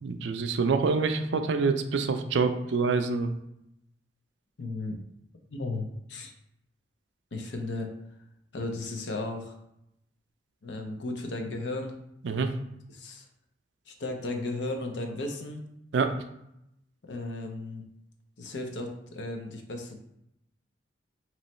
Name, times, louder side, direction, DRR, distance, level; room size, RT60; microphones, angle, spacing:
voice 1, 0.0-3.3 12.2-12.5 15.9-16.1, right 4 dB, 75° right, 8 dB, 0.4 m, -26 dB
voice 2, 4.6-5.0 5.5-6.3 7.3-7.9 8.5-9.6 10.6-12.0 12.9-13.3 13.9-15.6 17.1-17.8 18.4-20.0, left 2 dB, 75° left, 3 dB, 0.7 m, -35 dB
3.1 x 3.0 x 4.2 m, 0.81 s
head